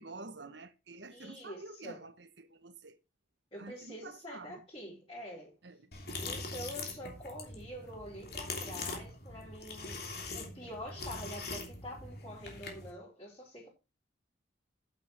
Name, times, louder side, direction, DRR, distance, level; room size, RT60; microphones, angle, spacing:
voice 1, 0.0-3.0 3.6-4.6 5.6-5.9, right 3 dB, 65° right, 1.3 m, -49 dB
voice 2, 1.1-2.0 3.5-5.6 6.2-13.7, equal, 25° left, 5.1 m, -46 dB
sound 1, 5.9-12.9, left 3 dB, 55° left, 3.1 m, -42 dB
9.1 x 8.8 x 5.0 m
head